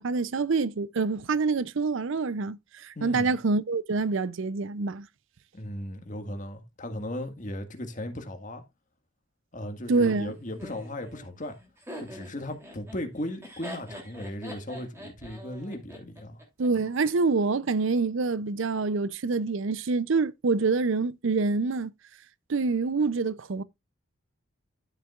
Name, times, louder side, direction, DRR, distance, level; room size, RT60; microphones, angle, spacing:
voice 1, 0.0-5.1 9.9-10.3 16.6-21.9 22.5-23.6, right 4 dB, 60° right, 0.5 m, -26 dB
voice 2, 3.0-3.3 5.5-8.6 9.5-11.6 12.0-16.4, left 1 dB, 35° left, 1.7 m, -37 dB
Laughter, 10.6-16.7, equal, 10° right, 2.9 m, -44 dB
12.0 x 7.4 x 2.4 m
head